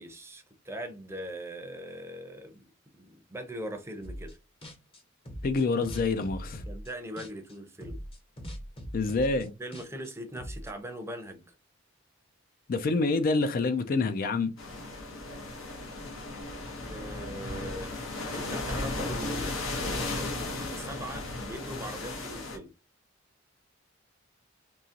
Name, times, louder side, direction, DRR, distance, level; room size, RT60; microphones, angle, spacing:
voice 1, 0.0-2.6 2.9-4.4 6.7-8.0 9.6-11.4 16.8-17.9 18.3-22.7, equal, 15° right, 0.6 m, -41 dB
sound 1, 4.0-4.4 4.6-7.5 7.8-10.7, equal, 30° left, 0.8 m, -41 dB
voice 2, 5.4-6.6 8.9-9.5 12.7-14.5, left 3 dB, 45° left, 0.4 m, -27 dB
sound 2, 14.6-22.6, left 2 dB, 75° left, 1.0 m, -35 dB
3.7 x 2.9 x 2.8 m
head